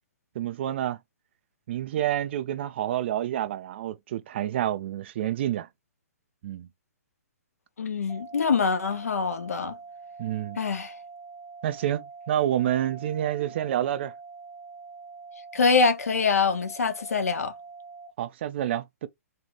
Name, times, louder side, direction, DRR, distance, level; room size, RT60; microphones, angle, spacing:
voice 1, 0.4-1.0 1.7-5.7 6.4-6.7 10.2-10.6 11.6-14.1 18.2-19.1, right 11 dB, 45° right, 0.4 m, -28 dB
voice 2, 7.8-9.8 10.6-10.9 15.5-17.5, left 5 dB, 70° left, 0.7 m, -24 dB
sound 1, 8.1-18.1, right 4 dB, 5° right, 0.9 m, -45 dB
2.7 x 2.4 x 3.0 m
figure-of-eight pair, 125°, 8 cm